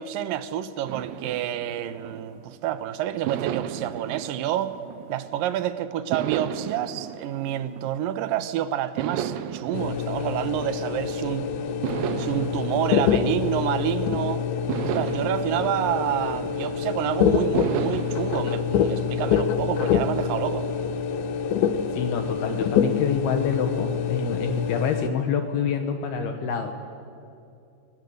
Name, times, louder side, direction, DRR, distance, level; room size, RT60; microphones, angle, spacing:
voice 1, 0.0-4.8 5.1-11.5 12.2-14.4 14.8-20.7, right 11 dB, 70° right, 2.3 m, -28 dB
sound 1, 0.9-2.7 3.3-5.5 6.1-8.4 9.0-11.2 11.8-14.1 14.7-17.0 17.5-19.8, right 10 dB, 90° right, 3.2 m, -34 dB
sound 2, 9.7-25.1, left 7 dB, 85° left, 3.5 m, -26 dB
voice 2, 21.9-26.7, left 6 dB, 70° left, 3.0 m, -27 dB
29.5 x 22.0 x 8.0 m
omnidirectional pair, 5.0 m